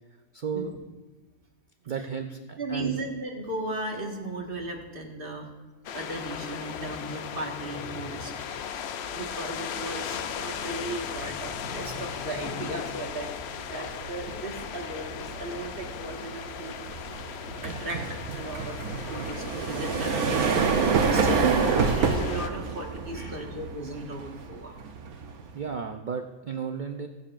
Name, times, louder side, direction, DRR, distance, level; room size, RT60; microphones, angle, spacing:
voice 1, 0.3-0.7 1.8-3.0 23.1-23.5 25.5-27.1, right 6 dB, 65° right, 6 dB, 0.4 m, -34 dB
voice 2, 2.6-5.5 5.9-8.3 9.1-13.3 13.7-16.7 17.5-18.0 18.3-21.6 21.9-24.8, right 2 dB, 40° right, 0 dB, 1.7 m, -36 dB
sound 1, 5.8-22.5, left 8 dB, 65° left, 0.7 m, -37 dB
sound 2, 8.3-8.6 9.0-25.7, right 5 dB, 85° right, 1.3 m, -29 dB
22.0 x 7.4 x 2.5 m, 1.3 s
omnidirectional pair, 1.5 m